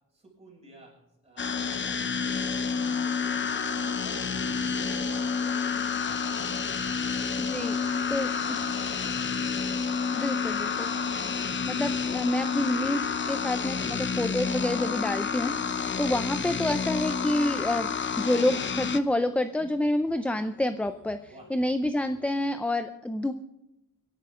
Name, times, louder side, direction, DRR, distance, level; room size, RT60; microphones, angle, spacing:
voice 1, 0.1-1.0 1.2-3.7 4.0-6.2 6.9-8.0 8.3-9.6 21.3-21.5, right 1 dB, 20° right, -3 dB, 6.9 m, -53 dB
sound 1, 1.4-19.0, left 6 dB, 35° left, 0.7 m, -29 dB
Wind instrument woodwind instrument, 2.1-7.9, right 5 dB, 70° right, 3.7 m, -50 dB
sound 2, 3.1-22.6, equal, 60° left, 6.5 m, -55 dB
voice 2, 7.4-8.3 10.1-10.9 11.7-15.5 16.0-17.9 18.2-23.3, left 1 dB, 5° left, 9 dB, 0.4 m, -28 dB
25.5 x 11.0 x 3.7 m, 0.88 s
wide cardioid pair, 170°, 33 cm